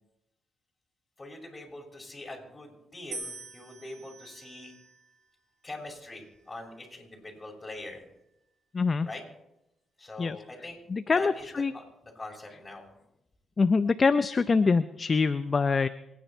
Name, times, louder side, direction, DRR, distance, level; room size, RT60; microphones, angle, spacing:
voice 1, 1.2-4.7 5.6-8.0 9.0-9.2 10.0-10.8 11.1-12.9, left 2 dB, 25° left, 0 dB, 6.3 m, -43 dB
sound 1, 3.1-5.3 6.1-6.7, right 2 dB, 70° right, 2.8 m, -45 dB
voice 2, 8.7-9.1 10.2-10.4 10.9-11.7 13.6-15.9, left 4 dB, 40° left, 12 dB, 0.6 m, -24 dB
26.5 x 10.0 x 4.4 m, 0.88 s
supercardioid pair, 65°, 0 cm